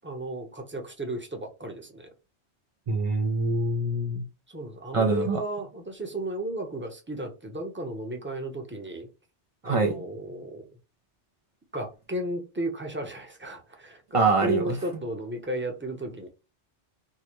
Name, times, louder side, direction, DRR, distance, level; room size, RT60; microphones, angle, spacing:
voice 1, 0.0-2.1 4.5-9.1 9.6-10.7 11.7-16.3, right 1 dB, 10° right, 0.7 m, -34 dB
voice 2, 2.9-4.2 4.9-5.4 9.6-9.9 14.1-14.8, right 3 dB, 60° right, 0.3 m, -24 dB
4.5 x 2.1 x 3.0 m
omnidirectional pair, 1.2 m